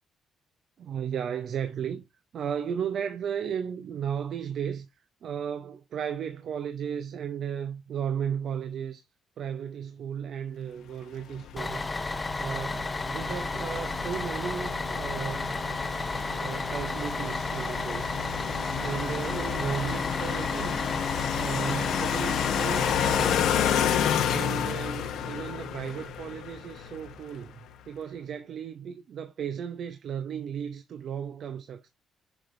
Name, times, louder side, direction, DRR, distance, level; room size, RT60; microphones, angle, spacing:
voice 1, 0.8-2.0 2.3-4.9 5.2-9.0 9.4-11.9 12.3-15.6 16.3-18.2 18.8-20.8 21.3-23.4 24.2-31.9, right 8 dB, 65° right, 0.7 m, -35 dB
sound 1, 11.3-27.5, left 9 dB, 80° left, 1.0 m, -31 dB
Bus, 11.6-23.3, left 3 dB, 25° left, 0.7 m, -32 dB
7.2 x 5.2 x 2.6 m
cardioid pair, 90°, 0 cm